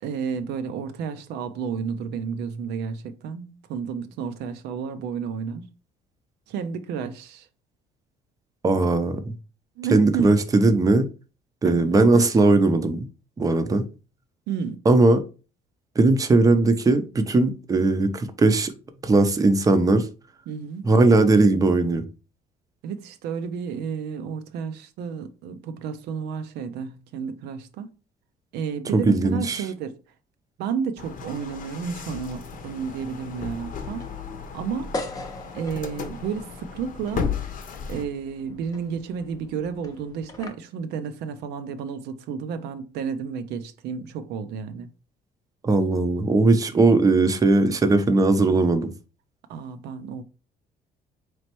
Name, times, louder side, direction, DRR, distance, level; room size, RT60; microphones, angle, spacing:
voice 1, 0.0-5.7 6.5-7.5 9.8-10.3 11.6-11.8 12.1-12.4 14.5-14.8 20.5-20.9 22.8-27.9 28.5-30.0 30.6-34.1 34.5-34.9 35.5-37.3 37.9-44.9 49.5-50.2, right 6 dB, 80° right, 0.5 m, -31 dB
voice 2, 8.6-9.3 9.9-11.1 11.6-13.1 13.4-13.8 14.9-15.2 16.0-18.7 19.0-20.1 20.8-22.0 28.9-29.6 45.6-48.9, right 3 dB, 20° right, 0.5 m, -19 dB
sound 1, 31.0-38.0, left 6 dB, 55° left, 0.7 m, -35 dB
sound 2, 32.5-40.5, left 2 dB, 20° left, 0.7 m, -41 dB
4.1 x 3.1 x 2.9 m
cardioid pair, 110°, 17 cm